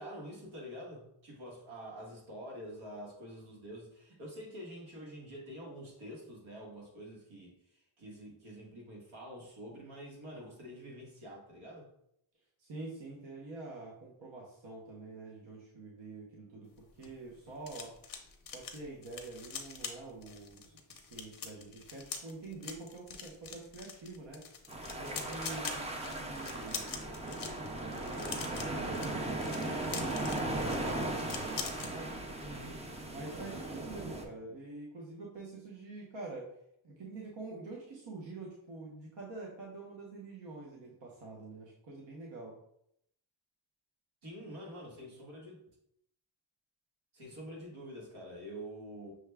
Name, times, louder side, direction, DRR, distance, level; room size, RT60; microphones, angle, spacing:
voice 1, 0.0-11.9 32.4-32.9 44.2-45.6 47.1-49.1, equal, 85° right, -2 dB, 1.6 m, -47 dB
voice 2, 12.6-17.9 18.5-24.4 24.9-26.8 27.8-32.1 33.0-36.5 36.8-42.5, right 3 dB, 65° right, -3 dB, 0.9 m, -47 dB
sound 1, 16.7-31.9 32.3-32.5 32.8-33.1, left 6 dB, 45° left, 0.6 m, -45 dB
sound 2, 24.7-34.2, right 2 dB, 15° right, 0.4 m, -37 dB
6.2 x 2.2 x 3.3 m, 0.75 s
wide cardioid pair, 155°, 47 cm